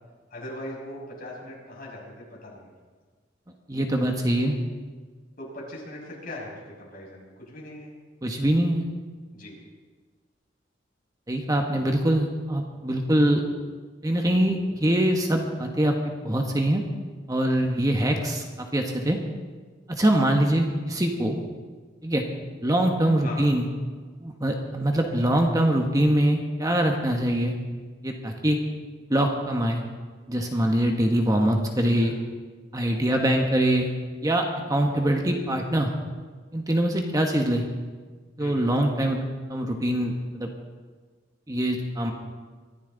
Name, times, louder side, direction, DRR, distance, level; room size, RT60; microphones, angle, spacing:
voice 1, 0.3-2.7 5.4-7.9 9.3-9.6 23.2-23.5 32.0-32.2 38.4-38.7, left 1 dB, 50° left, -3 dB, 6.1 m, -40 dB
voice 2, 3.7-4.5 8.2-8.8 11.3-13.4 14.0-16.8 17.3-19.2 19.9-21.4 22.0-22.2 22.6-23.6 24.2-27.5 28.0-28.6 29.1-29.8 30.3-32.1 32.7-33.9 34.2-35.9 36.5-37.6 38.4-39.2 39.5-40.5 41.5-42.1, right 1 dB, 20° right, 2 dB, 1.3 m, -23 dB
23.5 x 14.5 x 4.0 m, 1.4 s
head